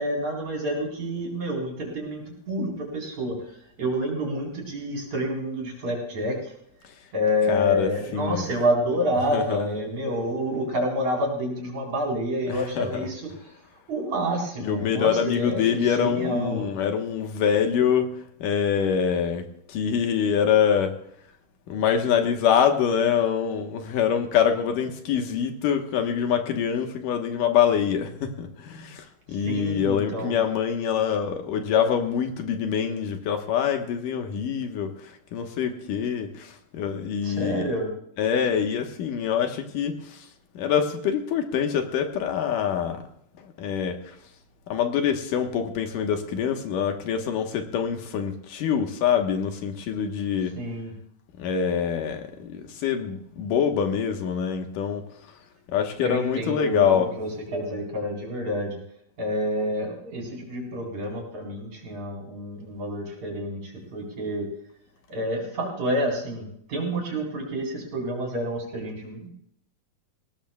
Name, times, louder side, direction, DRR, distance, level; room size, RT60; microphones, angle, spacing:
voice 1, 0.0-6.5 7.1-13.2 13.9-16.7 29.3-30.4 37.2-37.9 50.6-50.9 56.0-58.8 59.2-64.5 65.1-69.3, equal, 50° right, -1 dB, 5.6 m, -28 dB
voice 2, 7.5-8.5 9.3-9.8 12.5-13.1 14.6-21.0 21.7-37.8 38.2-40.3 40.5-43.0 43.4-44.1 44.7-50.6 51.4-55.1 55.7-57.2, left 8 dB, 65° left, 5 dB, 2.7 m, -25 dB
20.5 x 18.0 x 2.4 m, 0.71 s
omnidirectional pair, 4.3 m